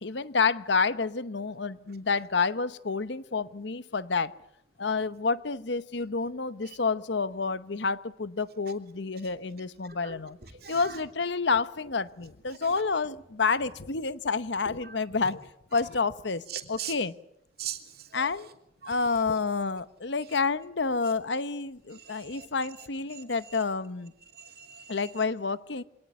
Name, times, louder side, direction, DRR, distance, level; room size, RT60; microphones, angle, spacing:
voice 1, 0.0-4.4 4.8-10.4 10.7-15.4 15.7-17.1 18.1-18.5 18.9-24.1 24.9-25.8, left 4 dB, 70° left, 14 dB, 0.9 m, -29 dB
voice 2, 10.0-11.0 12.6-12.7 14.8-14.9 16.5-16.9 17.6-18.3 18.8-19.0 21.9-22.5 23.1-23.5 24.3-25.0, right 9 dB, 55° right, 6 dB, 2.9 m, -41 dB
25.0 x 19.0 x 9.8 m, 0.80 s
head